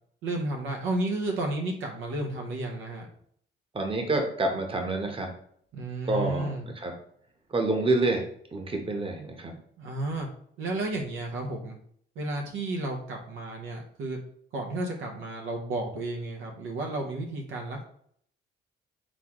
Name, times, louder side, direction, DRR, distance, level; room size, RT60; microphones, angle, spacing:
voice 1, 0.2-3.1 5.7-6.7 9.8-10.3 10.6-11.8 12.2-14.2 14.5-17.8, right 2 dB, 85° right, 1 dB, 0.9 m, -32 dB
voice 2, 3.7-5.3 6.1-6.9 7.5-8.2 8.5-9.5, right 2 dB, 25° right, 3 dB, 1.0 m, -27 dB
4.1 x 3.6 x 3.0 m, 0.63 s
cardioid pair, 90°, 20 cm